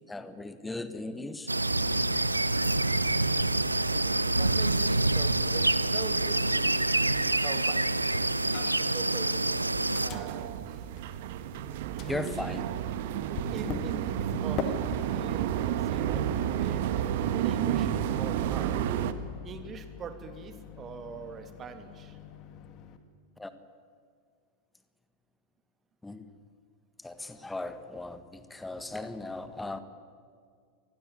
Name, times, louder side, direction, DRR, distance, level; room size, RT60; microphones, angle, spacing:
voice 1, 0.1-1.5 12.1-12.6 23.4-23.5 26.0-26.4 27.0-29.8, left 2 dB, 5° left, 11 dB, 1.6 m, -37 dB
sound 1, 1.5-10.1, right 2 dB, 85° right, 0.8 m, -26 dB
voice 2, 3.6-8.1 8.4-9.6 10.0-10.8 12.0-12.5 13.3-16.9 17.3-18.8 19.4-22.2, right 5 dB, 25° right, 8 dB, 2.7 m, -43 dB
Microwave oven, 8.5-9.0 9.3-11.6 12.0-23.0, left 7 dB, 35° left, 2.1 m, -43 dB
sound 2, 9.2-19.1, right 10 dB, 50° right, 1.5 m, -31 dB
26.0 x 21.0 x 9.5 m, 2.1 s
figure-of-eight pair, 90°, 0 cm